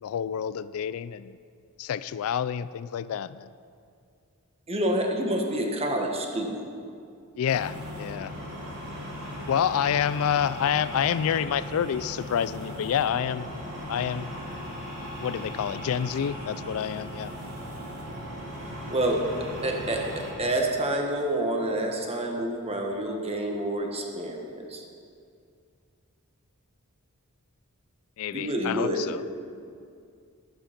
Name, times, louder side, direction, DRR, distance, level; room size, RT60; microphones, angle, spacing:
voice 1, 0.0-1.4 1.8-3.5 7.4-8.3 9.5-13.5 13.9-14.3 15.2-17.3 28.2-29.2, left 8 dB, 65° left, 16 dB, 0.3 m, -28 dB
voice 2, 4.7-6.6 18.9-19.2 19.6-24.8 28.3-29.0, right 1 dB, 25° right, 2 dB, 1.4 m, -28 dB
sound 1, 7.4-20.3, equal, 75° right, 3.7 m, -38 dB
11.5 x 11.5 x 5.2 m, 2.3 s
head